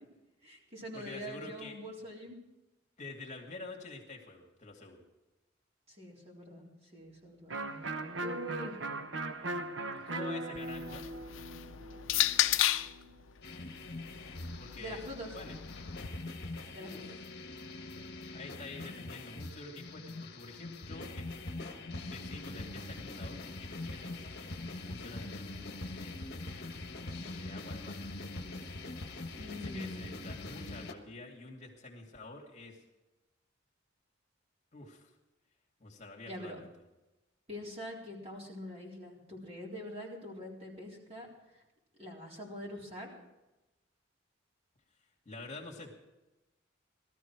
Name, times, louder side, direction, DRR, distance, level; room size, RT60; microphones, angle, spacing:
voice 1, 0.4-2.4 5.9-7.5 8.2-8.8 10.0-10.1 14.8-15.3 16.7-17.2 29.4-30.0 36.2-36.6 37.5-41.3 41.5-41.6 42.0-43.2, equal, 30° right, -3 dB, 4.0 m, -44 dB
voice 2, 0.9-1.8 3.0-5.0 9.5-9.6 9.9-11.1 14.6-15.0 15.3-15.6 16.8-17.1 17.9-21.3 22.0-24.3 24.8-26.4 27.3-28.5 29.2-32.8 34.7-35.1 35.8-36.7 45.3-45.9, left 2 dB, 35° left, -1 dB, 2.4 m, -48 dB
Electric guitar, 7.5-13.1, right 2 dB, 70° right, 1.1 m, -39 dB
sound 1, 10.6-13.0 14.0-16.1, left 13 dB, 80° left, 0.6 m, -33 dB
sound 2, 13.4-30.9, left 2 dB, 55° left, 1.4 m, -43 dB
17.5 x 13.5 x 4.8 m, 1.0 s
head